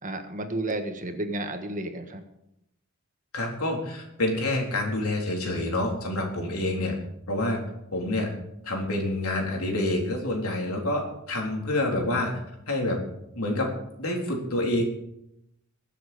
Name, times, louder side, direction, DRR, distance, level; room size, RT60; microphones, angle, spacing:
voice 1, 0.0-2.2, right 2 dB, 35° right, 6 dB, 1.6 m, -32 dB
voice 2, 3.3-7.0 7.3-7.6 7.9-8.3 8.6-12.3 12.7-13.0 13.4-14.8, left 1 dB, 80° left, 0 dB, 3.9 m, -27 dB
22.0 x 7.6 x 5.3 m, 0.81 s
head